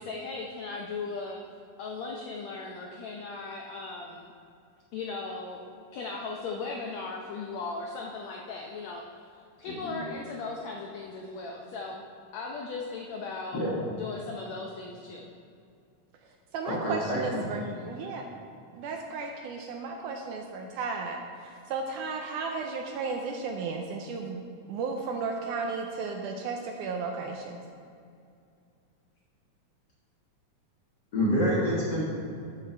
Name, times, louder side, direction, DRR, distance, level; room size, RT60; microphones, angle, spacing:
voice 1, 0.0-1.4 1.8-4.3 4.9-5.6 5.9-9.0 9.6-12.0 12.3-15.3 17.6-17.9, left 4 dB, 80° left, -1 dB, 1.6 m, -37 dB
voice 2, 9.7-10.1 13.5-13.8 16.6-17.5 31.1-32.0, equal, 45° left, -6 dB, 1.5 m, -28 dB
voice 3, 16.5-18.2 18.7-27.6, right 4 dB, 80° right, 3 dB, 1.9 m, -34 dB
13.0 x 5.9 x 4.4 m, 2.4 s
omnidirectional pair, 4.0 m